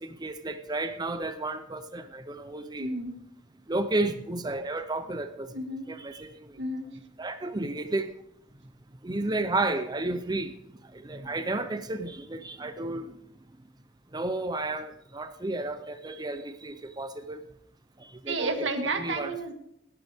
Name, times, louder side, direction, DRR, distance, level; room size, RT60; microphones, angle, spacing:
voice 1, 0.0-2.9 3.7-5.5 5.9-6.5 7.2-8.1 9.0-10.5 10.9-13.1 14.1-17.4 18.2-18.7 19.0-19.3, right 2 dB, 20° right, 9 dB, 0.6 m, -32 dB
voice 2, 2.8-3.2 5.5-5.9 6.6-6.9 18.3-19.5, right 2 dB, 85° right, 6 dB, 1.8 m, -31 dB
18.0 x 10.5 x 3.5 m, 0.78 s
head